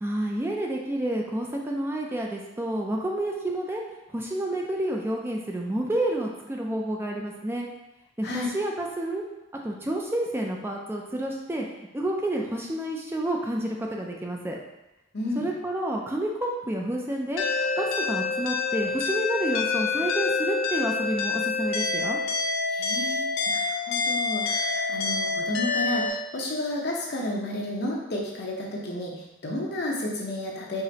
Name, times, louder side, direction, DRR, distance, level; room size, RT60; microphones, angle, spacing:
voice 1, 0.0-3.8 4.1-7.7 8.2-9.2 9.6-11.7 11.9-14.6 15.4-22.2, right 1 dB, 10° right, 0 dB, 0.4 m, -29 dB
voice 2, 15.1-15.4 22.7-30.8, left 1 dB, 60° left, -2 dB, 0.8 m, -32 dB
sound 1, 17.4-26.1, left 4 dB, 85° left, 0.5 m, -27 dB
4.8 x 3.0 x 2.8 m, 0.96 s
head